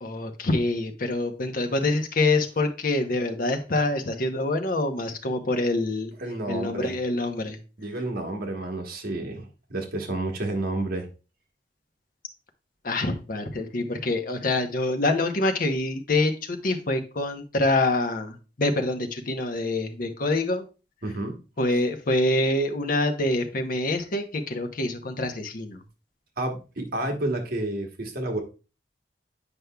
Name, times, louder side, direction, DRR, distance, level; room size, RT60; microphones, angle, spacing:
voice 1, 0.0-6.1 6.5-7.6 12.8-20.6 21.6-25.8, left 2 dB, 55° left, 6 dB, 0.9 m, -26 dB
voice 2, 6.2-7.0 7.8-11.1 21.0-21.4 21.7-21.8 26.4-28.4, right 2 dB, 60° right, 3 dB, 1.2 m, -30 dB
8.0 x 5.3 x 2.3 m, 0.32 s
head